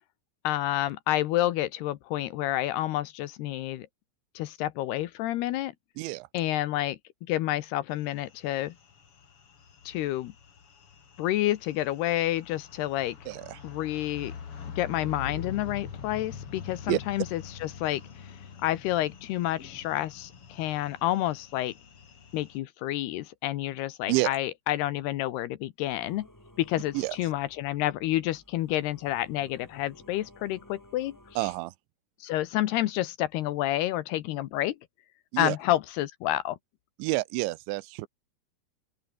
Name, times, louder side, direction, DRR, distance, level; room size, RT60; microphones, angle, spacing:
voice 1, 0.4-3.9 4.4-5.7 6.3-7.0 7.3-8.7 9.9-10.3 11.2-13.2 13.6-14.3 14.8-18.3 18.6-21.7 22.3-26.3 26.6-31.2 32.2-34.8 35.4-36.6, left 14 dB, 75° left, 2.8 m, -29 dB
voice 2, 6.0-6.3 13.3-13.6 16.9-17.0 24.1-24.3 26.9-27.2 31.4-31.7 35.3-35.6 37.0-38.1, right 20 dB, 85° right, 3.0 m, -29 dB
sound 1, 8.0-22.6, left 6 dB, 40° left, 2.6 m, -45 dB
Singing / Musical instrument, 25.9-31.6, left 1 dB, 5° left, 3.4 m, -55 dB
open air
omnidirectional pair, 5.2 m